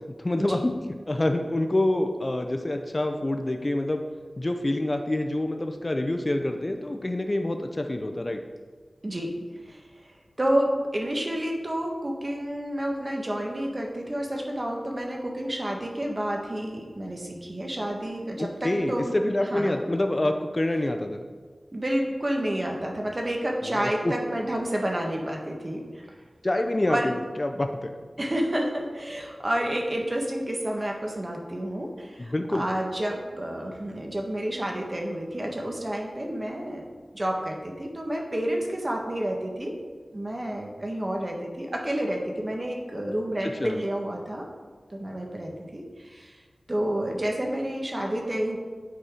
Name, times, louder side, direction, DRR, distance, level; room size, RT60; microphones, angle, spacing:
voice 1, 0.2-0.7 1.1-4.0 4.4-8.4 18.4-21.2 23.6-24.1 26.4-27.9 32.2-32.7 43.6-43.8, left 1 dB, 35° left, 5 dB, 0.6 m, -27 dB
voice 2, 9.0-9.3 9.7-9.8 10.4-19.2 19.5-19.7 21.7-26.0 26.9-27.1 28.2-36.9 37.1-39.7 40.1-44.5 44.9-46.4 46.7-48.6, right 1 dB, 35° right, 1 dB, 1.4 m, -30 dB
9.3 x 4.3 x 5.0 m, 1.5 s
wide cardioid pair, 60°, 0 cm